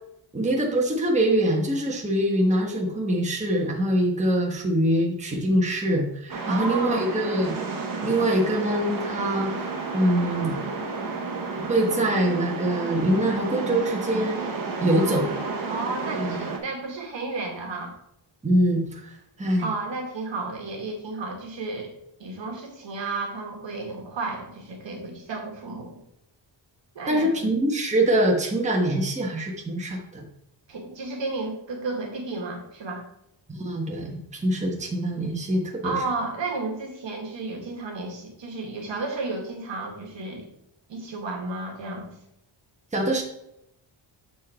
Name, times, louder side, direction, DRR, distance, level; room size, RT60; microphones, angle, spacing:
voice 1, 0.3-7.5 8.0-9.5 9.9-10.6 11.6-14.4 14.8-15.3 16.1-16.4 18.4-19.7 27.1-30.2 33.5-35.9 42.9-43.2, right 1 dB, 15° right, -1 dB, 1.2 m, -24 dB
sound 1, 6.3-16.6, right 4 dB, 45° right, 1.2 m, -31 dB
voice 2, 6.5-7.1 15.0-18.0 19.6-21.9 22.2-26.0 27.0-27.5 30.7-33.0 35.8-40.5 40.9-42.1, right 3 dB, 65° right, 1 dB, 1.8 m, -32 dB
7.3 x 4.6 x 4.4 m, 0.80 s
wide cardioid pair, 140°, 48 cm